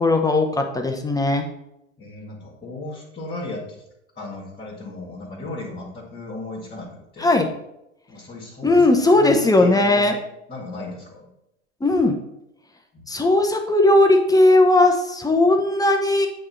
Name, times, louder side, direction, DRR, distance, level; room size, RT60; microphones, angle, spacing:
voice 1, 0.0-1.5 7.2-7.5 8.6-10.2 11.8-12.2 13.1-16.3, left 2 dB, 10° left, 4 dB, 0.8 m, -17 dB
voice 2, 2.0-3.8 4.2-7.4 8.1-10.2 10.5-11.3 12.9-13.1, left 2 dB, 25° left, -5 dB, 1.9 m, -36 dB
8.6 x 3.3 x 4.4 m, 0.84 s
figure-of-eight pair, 80°, 37 cm